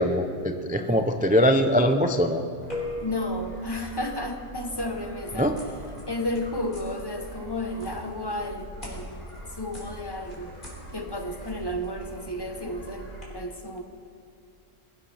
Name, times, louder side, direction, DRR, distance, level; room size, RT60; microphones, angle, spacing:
voice 1, 0.0-2.4 5.4-5.6, equal, 10° right, 6 dB, 0.4 m, -22 dB
voice 2, 0.7-1.2 3.0-5.5 6.1-10.5 10.9-13.8, left 1 dB, 20° left, 5 dB, 1.0 m, -33 dB
sound 1, 2.6-13.2, equal, 40° left, 3.6 m, -42 dB
sound 2, 2.7-4.8, left 2 dB, 40° right, 3.6 m, -38 dB
22.0 x 15.0 x 3.5 m, 2.5 s
omnidirectional pair, 1.3 m